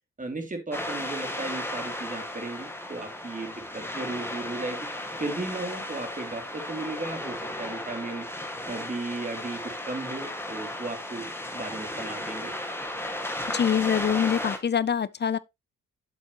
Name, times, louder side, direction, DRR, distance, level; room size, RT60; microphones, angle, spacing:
voice 1, 0.2-4.9 5.2-8.3 8.7-12.5, right 2 dB, 25° right, 2.8 m, -35 dB
sound 1, 0.7-14.6, left 1 dB, 5° left, 1.8 m, -35 dB
voice 2, 13.5-15.4, left 8 dB, 35° left, 0.5 m, -25 dB
8.0 x 7.2 x 3.0 m
cardioid pair, 80°, 31 cm